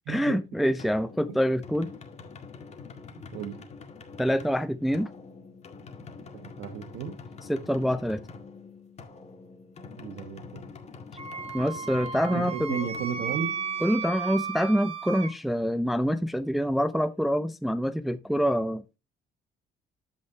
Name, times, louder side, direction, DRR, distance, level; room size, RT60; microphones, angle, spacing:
voice 1, 0.1-1.9 4.2-5.1 7.4-8.2 11.5-12.9 13.8-19.0, equal, ahead, 0.5 m, -26 dB
sound 1, 0.8-14.3, left 4 dB, 40° left, 1.9 m, -46 dB
voice 2, 3.1-3.6 6.3-7.1 10.0-10.6 12.3-13.5, right 7 dB, 80° right, 1.4 m, -34 dB
Wind instrument woodwind instrument, 11.2-15.3, right 7 dB, 35° right, 1.6 m, -34 dB
14.5 x 5.2 x 2.8 m
cardioid pair, 110°, 17 cm